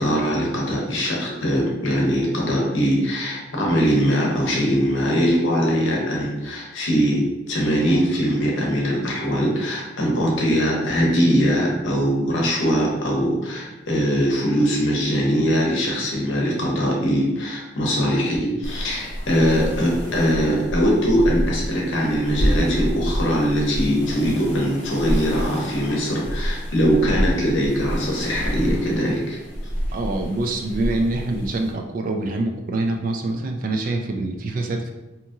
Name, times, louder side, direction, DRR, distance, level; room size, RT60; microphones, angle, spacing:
voice 1, 0.0-29.4, equal, 80° left, -2 dB, 0.8 m, -21 dB
sound 1, 18.6-31.7, equal, 35° left, 0.7 m, -28 dB
voice 2, 29.9-34.9, right 2 dB, 45° right, 3 dB, 0.3 m, -25 dB
2.9 x 2.7 x 2.4 m, 1.0 s
head